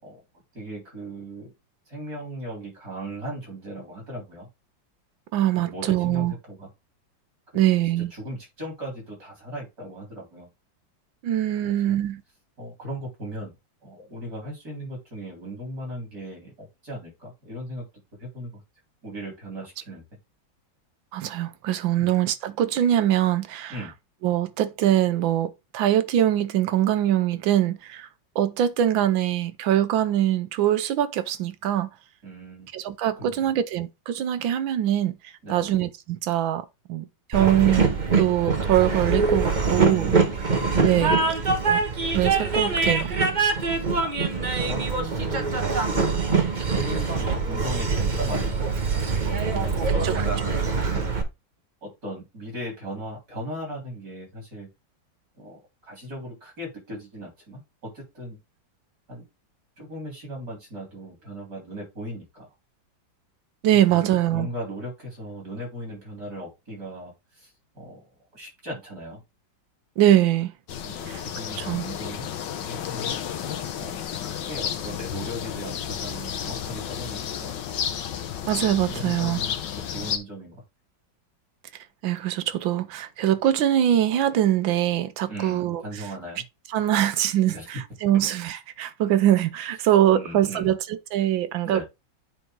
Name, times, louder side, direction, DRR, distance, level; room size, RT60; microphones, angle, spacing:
voice 1, 0.5-1.5 1.9-4.5 5.5-6.7 7.5-10.5 11.6-12.0 12.6-13.5 13.8-17.8 18.2-18.6 19.0-20.0 22.0-22.1 23.7-23.9 32.2-32.7 33.2-33.6 35.4-35.8 39.7-40.3 41.0-41.4 44.0-46.0 46.7-48.8 49.5-50.4 50.9-51.1 51.8-54.7 55.4-58.4 59.1-59.2 59.8-62.5 63.9-69.2 70.8-72.3 72.6-73.1 73.8-74.0 74.2-77.5 78.9-80.6 85.3-86.4 87.5-87.7 90.1-90.7 91.6-91.8, equal, 50° right, 4.3 m, -38 dB
voice 2, 5.3-6.3 7.5-8.1 11.2-12.2 21.1-23.8 24.2-28.1 28.3-31.9 32.7-35.2 35.5-40.1 40.8-41.2 41.7-41.8 42.1-43.2 49.9-50.2 63.6-64.5 70.0-70.5 71.1-71.2 71.6-71.8 78.4-79.4 82.0-85.8 86.7-91.8, right 12 dB, 85° right, 1.5 m, -23 dB
Train, 37.3-51.2, right 4 dB, 30° right, 1.0 m, -24 dB
sound 1, 70.7-80.2, left 9 dB, 70° left, 1.5 m, -32 dB
9.0 x 3.8 x 4.6 m
omnidirectional pair, 2.1 m